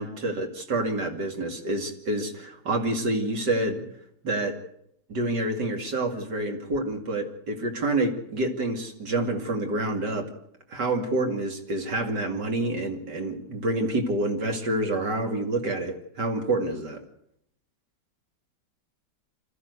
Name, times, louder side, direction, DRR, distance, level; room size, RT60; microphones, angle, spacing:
voice 1, 0.0-3.8 4.2-4.6 5.1-10.3 10.7-17.0, right 2 dB, 70° right, 4 dB, 3.2 m, -28 dB
26.0 x 14.0 x 8.2 m, 0.72 s
omnidirectional pair, 1.9 m